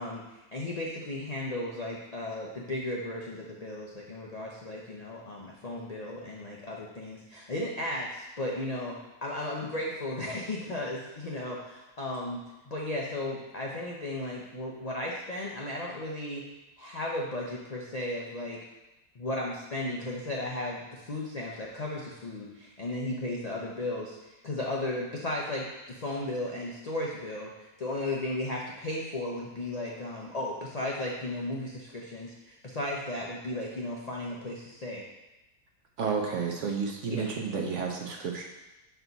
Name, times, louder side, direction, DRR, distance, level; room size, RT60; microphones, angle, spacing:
voice 1, 0.0-9.0 9.2-12.4 12.7-16.4 16.8-18.6 19.2-35.0 37.1-37.3, left 1 dB, 50° left, -3 dB, 0.4 m, -35 dB
voice 2, 36.0-38.4, right 5 dB, 60° right, 1 dB, 0.9 m, -31 dB
5.8 x 4.5 x 3.9 m, 1.0 s
omnidirectional pair, 1.7 m